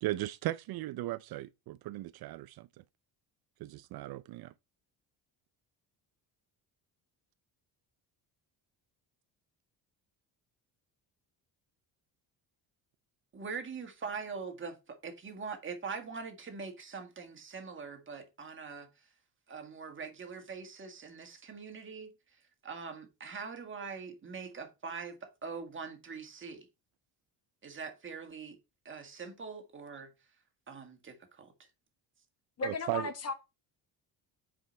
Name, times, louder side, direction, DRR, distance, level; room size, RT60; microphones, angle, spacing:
voice 1, 0.0-2.7 3.6-4.5 32.6-33.1, right 16 dB, 65° right, 0.5 m, -37 dB
voice 2, 13.3-18.9 19.5-22.1 22.6-26.7 27.6-28.6 28.9-30.1 30.7-31.5, right 5 dB, 30° right, 1.8 m, -43 dB
voice 3, 32.6-33.3, left 3 dB, 40° left, 1.3 m, -35 dB
7.9 x 5.1 x 4.4 m
cardioid pair, 130°, 40 cm